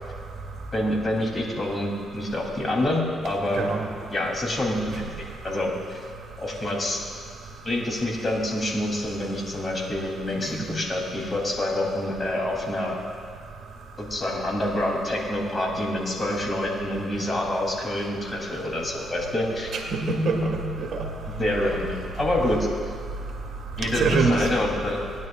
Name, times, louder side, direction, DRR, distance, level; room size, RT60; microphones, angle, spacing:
voice 1, 0.7-3.7 4.1-5.0 5.4-6.0 6.4-7.0 7.6-13.0 14.0-19.7 21.4-22.7 23.8-25.0, left 1 dB, 30° left, -2 dB, 3.0 m, -27 dB
voice 2, 3.5-3.8 10.3-10.7 19.9-21.0 23.9-24.4, right 3 dB, 65° right, 1 dB, 1.6 m, -24 dB
19.0 x 10.5 x 2.4 m, 2.4 s
cardioid pair, 90°, 0 cm